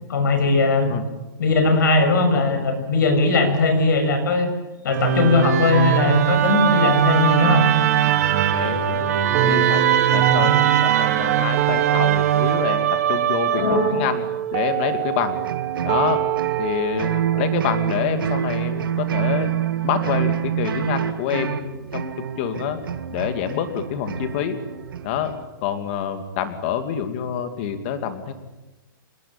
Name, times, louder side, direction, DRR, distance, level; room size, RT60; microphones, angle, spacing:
voice 1, 0.1-1.0 1.4-4.5 4.8-7.6 13.5-14.1, left 3 dB, 60° left, 6 dB, 6.6 m, -19 dB
Musical instrument, 4.9-14.1, right 10 dB, 45° right, 2.4 m, -20 dB
voice 2, 8.5-9.9 10.1-14.2 14.5-15.4 15.8-16.2 16.6-19.5 19.8-22.8 23.1-24.6 25.0-25.3 25.6-28.3, left 9 dB, 30° left, 8 dB, 2.5 m, -27 dB
sound 1, 9.3-19.3, right 16 dB, 25° right, 0.8 m, -27 dB
sound 2, 15.3-25.5, right 9 dB, 80° right, 2.0 m, -27 dB
27.0 x 21.0 x 8.9 m, 1.1 s
hypercardioid pair, 175°, 11 cm